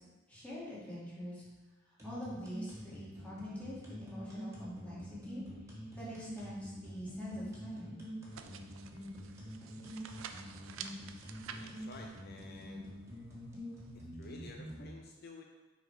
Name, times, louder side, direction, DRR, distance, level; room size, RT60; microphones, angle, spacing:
voice 1, 0.3-1.4 1.9-8.0, equal, 5° left, -9 dB, 2.4 m, -45 dB
sound 1, 2.0-14.8, equal, 15° right, 1.7 m, -46 dB
sound 2, 8.3-14.0, right 7 dB, 80° right, 0.5 m, -51 dB
voice 2, 11.5-12.9 13.9-15.4, left 3 dB, 55° left, 2 dB, 0.6 m, -52 dB
6.0 x 5.0 x 5.0 m, 1.2 s
head